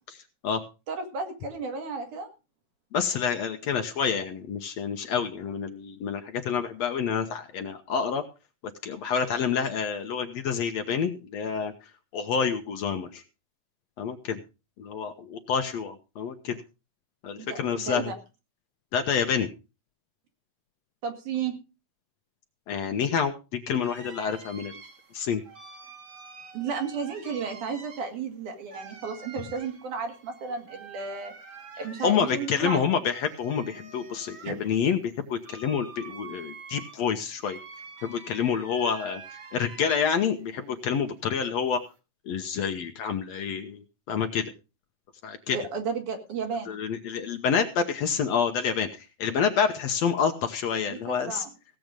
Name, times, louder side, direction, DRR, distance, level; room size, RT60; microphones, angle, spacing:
voice 1, 0.2-0.6 2.9-8.2 8.8-11.7 12.1-13.2 14.0-14.4 14.8-16.6 17.2-18.1 18.9-19.5 22.7-24.7 25.1-25.4 32.0-37.6 38.0-41.8 42.3-44.5 45.2-45.6 46.7-51.5, left 7 dB, 70° left, 6 dB, 1.8 m, -28 dB
voice 2, 0.9-2.3 17.4-18.2 21.0-21.5 26.5-31.3 31.8-32.8 34.4-34.6 45.5-46.7 50.9-51.5, right 5 dB, 70° right, 4 dB, 3.7 m, -33 dB
sound 1, 23.8-40.5 40.8-42.0, right 5 dB, 40° right, 1.9 m, -47 dB
17.0 x 7.7 x 5.2 m, 0.31 s
omnidirectional pair, 3.7 m